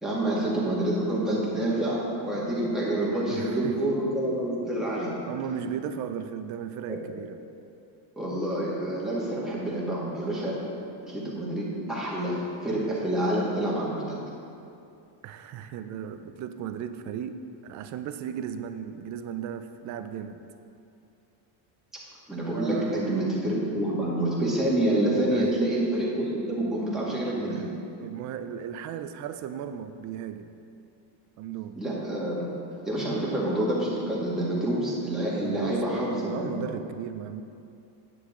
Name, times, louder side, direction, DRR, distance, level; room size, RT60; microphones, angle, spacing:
voice 1, 0.0-5.2 6.9-7.0 8.2-10.6 11.1-14.2 22.3-27.6 31.8-32.4 32.9-36.6, right 1 dB, ahead, -7 dB, 1.9 m, -27 dB
voice 2, 3.3-3.8 5.3-7.4 15.2-20.4 22.5-23.1 25.3-25.7 27.4-30.5 31.4-31.8 35.4-37.4, right 8 dB, 40° right, 10 dB, 0.4 m, -36 dB
9.7 x 8.7 x 3.7 m, 2.6 s
cardioid pair, 155°, 49 cm